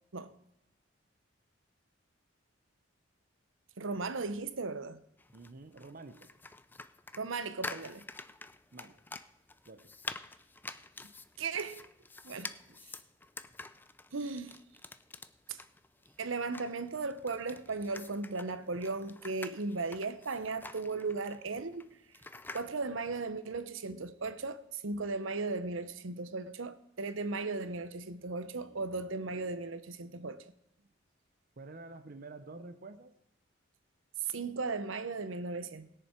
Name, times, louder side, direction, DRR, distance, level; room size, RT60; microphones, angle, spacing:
voice 1, 3.8-5.0 7.2-8.1 11.0-11.9 12.2-12.6 14.1-14.6 15.5-15.6 16.2-21.8 22.5-30.5 34.3-35.9, right 3 dB, 80° right, 0.8 m, -36 dB
sound 1, 5.2-22.7, left 3 dB, 10° left, 0.3 m, -48 dB
voice 2, 5.3-6.3 8.7-9.0 9.7-9.9 12.7-12.8 31.6-33.1, right 3 dB, 45° right, 0.7 m, -49 dB
20.5 x 6.9 x 4.5 m
head